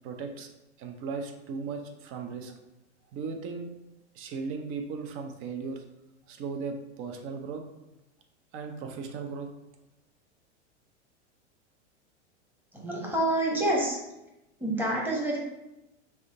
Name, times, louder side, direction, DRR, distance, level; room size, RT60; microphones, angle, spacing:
voice 1, 0.0-0.5 0.8-2.5 3.1-3.7 4.1-5.8 6.3-7.6 8.5-9.5, right 5 dB, 35° right, 4 dB, 0.7 m, -36 dB
voice 2, 12.7-14.0 14.6-15.4, right 1 dB, 5° right, -3 dB, 1.1 m, -27 dB
3.5 x 2.8 x 4.4 m, 0.95 s
hypercardioid pair, 115°, 35 cm